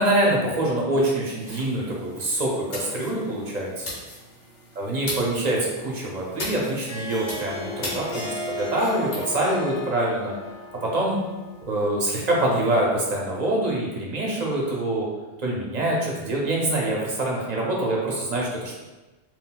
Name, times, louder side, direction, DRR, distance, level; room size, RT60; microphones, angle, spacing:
voice 1, 0.0-3.9 4.8-10.4 10.8-11.2 11.7-15.1 15.4-18.8, right 1 dB, 45° right, -3 dB, 0.6 m, -25 dB
sound 1, 1.4-9.2, left 1 dB, 90° left, 1.2 m, -38 dB
Harp, 6.7-12.1, left 1 dB, 65° left, 0.3 m, -36 dB
3.8 x 2.3 x 2.2 m, 1.1 s
omnidirectional pair, 1.1 m